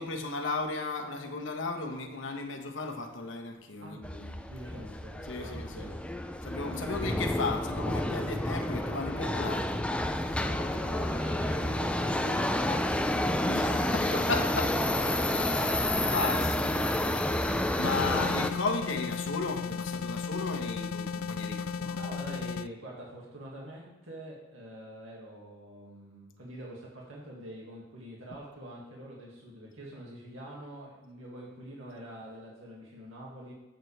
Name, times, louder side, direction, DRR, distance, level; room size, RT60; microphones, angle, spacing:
voice 1, 0.0-4.3 4.7-4.8 5.3-5.9 6.4-10.3 13.4-14.7 16.1-17.5 17.8-22.0, left 3 dB, 65° left, 1.2 m, -35 dB
Subway metro underground, 4.0-18.5, left 1 dB, 5° left, 0.4 m, -30 dB
voice 2, 4.5-6.0 6.8-7.0 10.3-16.3 21.6-33.5, right 1 dB, 80° right, 2.1 m, -45 dB
sound 1, 17.8-22.7, left 5 dB, 85° left, 0.3 m, -35 dB
12.0 x 8.0 x 3.4 m
head